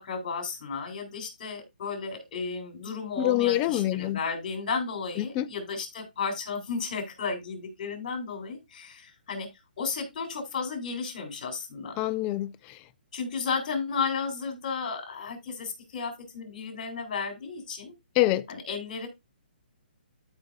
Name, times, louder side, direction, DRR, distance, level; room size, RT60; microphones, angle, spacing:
voice 1, 0.0-9.5 9.8-12.0 13.1-17.9 18.5-19.1, left 5 dB, 45° left, 3.7 m, -33 dB
voice 2, 3.2-4.2 5.2-5.5 12.0-12.8 18.2-18.5, left 15 dB, 20° left, 0.4 m, -26 dB
13.5 x 5.2 x 2.6 m
hypercardioid pair, 160°, 6 cm